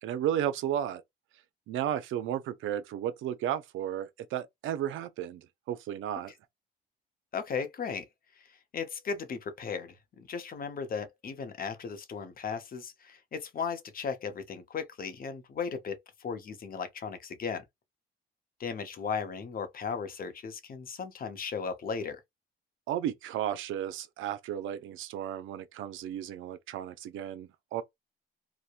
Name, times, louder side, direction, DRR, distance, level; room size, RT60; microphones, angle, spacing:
voice 1, 0.0-1.0 1.7-6.3 22.9-27.8, right 10 dB, 80° right, 0.5 m, -33 dB
voice 2, 7.3-8.1 8.7-17.6 18.6-22.2, left 6 dB, 45° left, 0.7 m, -36 dB
2.9 x 2.1 x 2.4 m
cardioid pair, 90°, 20 cm